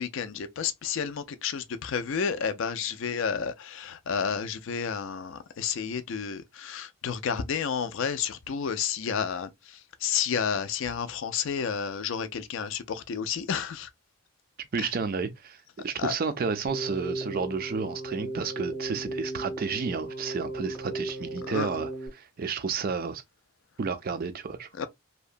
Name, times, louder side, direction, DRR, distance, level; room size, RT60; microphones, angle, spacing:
voice 1, 0.0-9.5 10.0-13.9 16.0-16.1 21.5-21.7 24.8-24.9, left 7 dB, 55° left, 0.3 m, -31 dB
voice 2, 14.7-15.6 15.8-23.2 23.8-24.7, right 5 dB, 40° right, 0.3 m, -31 dB
Keyboard (musical), 16.7-22.1, right 2 dB, ahead, 0.7 m, -36 dB
2.8 x 2.1 x 2.4 m
head